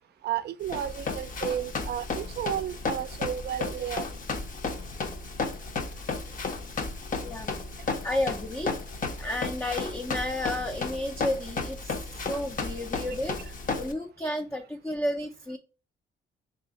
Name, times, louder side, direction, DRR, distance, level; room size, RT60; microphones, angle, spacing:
voice 1, 0.2-4.1, right 10 dB, 55° right, 0.4 m, -32 dB
Run, 0.6-13.9, left 4 dB, 45° left, 0.8 m, -33 dB
voice 2, 8.0-8.7 9.2-11.9 12.2-15.6, left 1 dB, 10° left, 0.5 m, -32 dB
3.2 x 2.8 x 3.9 m
cardioid pair, 90°, 20 cm